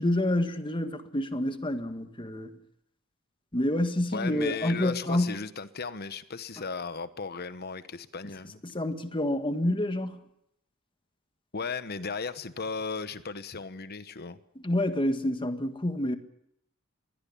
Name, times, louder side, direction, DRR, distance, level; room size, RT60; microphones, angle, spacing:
voice 1, 0.0-2.5 3.5-5.4 8.6-10.2 14.6-16.2, left 1 dB, 25° left, 1.7 m, -28 dB
voice 2, 4.1-8.6 11.5-14.4, left 4 dB, 50° left, 1.1 m, -36 dB
23.0 x 16.5 x 8.6 m
head